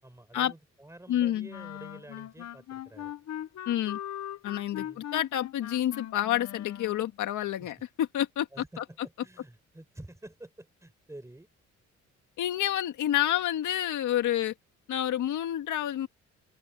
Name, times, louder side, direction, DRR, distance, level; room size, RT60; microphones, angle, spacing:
voice 1, 0.0-3.1 4.7-5.0 7.6-7.7 8.5-11.5, right 1 dB, 10° right, 6.0 m, -49 dB
voice 2, 1.1-1.5 3.7-4.0 4.4-8.5 8.8-8.9 12.4-14.5 14.9-16.1, left 12 dB, 80° left, 1.9 m, -29 dB
sound 1, 1.5-7.2, left 11 dB, 60° left, 1.0 m, -40 dB
open air
cardioid pair, 90°, 30 cm